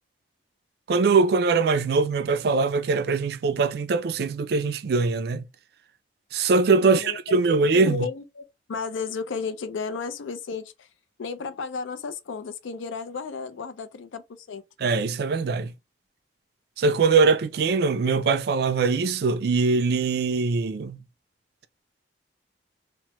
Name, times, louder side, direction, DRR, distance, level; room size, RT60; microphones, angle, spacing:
voice 1, 0.9-5.4 6.3-8.1 14.8-15.7 16.8-21.0, right 4 dB, 55° right, 0.3 m, -22 dB
voice 2, 6.8-7.2 7.7-8.4 8.7-10.9 11.2-14.2 14.5-14.6, left 5 dB, 85° left, 0.4 m, -33 dB
2.9 x 2.1 x 2.9 m
head